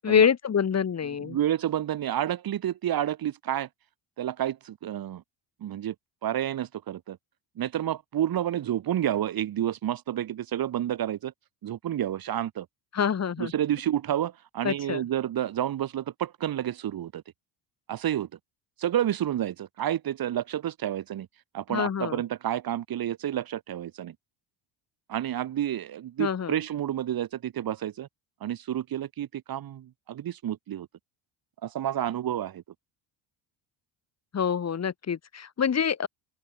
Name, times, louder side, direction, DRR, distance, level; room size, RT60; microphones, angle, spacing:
voice 1, 0.0-1.4 12.9-13.5 14.6-15.0 21.7-22.2 26.2-26.5 34.3-36.1, left 7 dB, 35° left, 4.4 m, -26 dB
voice 2, 1.2-3.7 4.2-5.2 5.6-5.9 6.2-7.2 7.6-11.3 11.6-12.7 13.4-17.2 17.9-18.3 18.8-21.3 21.5-24.1 25.1-28.1 28.4-30.9 31.6-32.6, right 11 dB, 50° right, 2.6 m, -30 dB
open air
cardioid pair, 140°, 47 cm